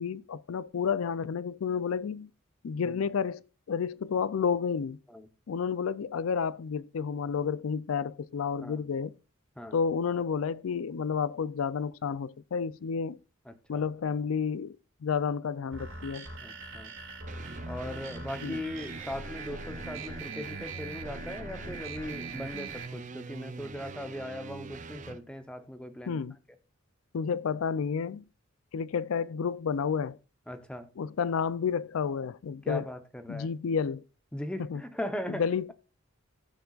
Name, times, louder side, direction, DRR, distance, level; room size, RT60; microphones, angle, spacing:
voice 1, 0.0-2.3 2.6-3.4 3.7-5.0 5.5-9.1 9.7-13.2 13.7-14.8 15.0-16.3 18.4-18.6 26.1-26.4 27.1-28.2 28.7-30.2 31.0-32.9 33.3-34.0 34.7-34.8 35.3-35.7, left 6 dB, 80° left, 0.4 m, -30 dB
voice 2, 13.5-13.8 16.4-16.9 17.6-26.2 30.5-30.9 32.6-33.5 34.3-35.7, left 1 dB, 5° left, 0.8 m, -39 dB
sound 1, 15.7-22.9, right 3 dB, 65° right, 5.1 m, -42 dB
sound 2, 17.3-25.2, right 3 dB, 35° right, 0.5 m, -43 dB
19.0 x 6.9 x 2.4 m
head